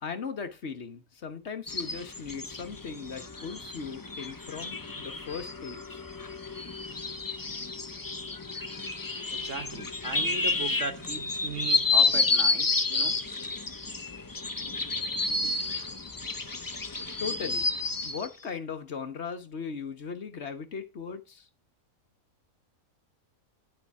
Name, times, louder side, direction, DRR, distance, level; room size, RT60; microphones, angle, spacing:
voice 1, 0.0-6.0 17.2-17.7 18.0-21.4, left 6 dB, 55° left, 1.5 m, -38 dB
sound 1, 1.7-18.3, left 3 dB, 20° left, 0.6 m, -30 dB
voice 2, 9.3-13.2, right 6 dB, 60° right, 1.4 m, -38 dB
10.0 x 6.8 x 4.7 m
omnidirectional pair, 1.5 m